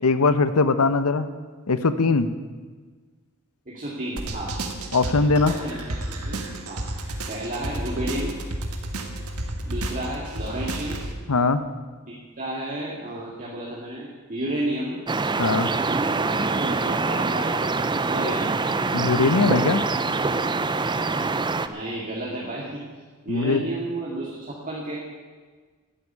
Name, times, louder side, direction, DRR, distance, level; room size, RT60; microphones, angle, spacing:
voice 1, 0.0-1.3 1.7-2.3 4.9-5.5 11.3-11.6 15.4-15.7 18.9-19.8 23.3-23.6, left 3 dB, 90° left, 12 dB, 0.9 m, -20 dB
voice 2, 3.7-4.6 5.5-6.9 7.3-8.4 9.6-11.0 12.1-15.0 16.1-17.7 18.1-18.5 21.6-22.8 23.3-25.0, right 1 dB, 40° right, -5 dB, 2.3 m, -32 dB
sound 1, 4.2-11.1, right 1 dB, 80° right, 1.7 m, -32 dB
sound 2, 15.1-21.7, right 3 dB, 20° right, 0.5 m, -24 dB
12.5 x 8.1 x 9.9 m, 1.4 s
head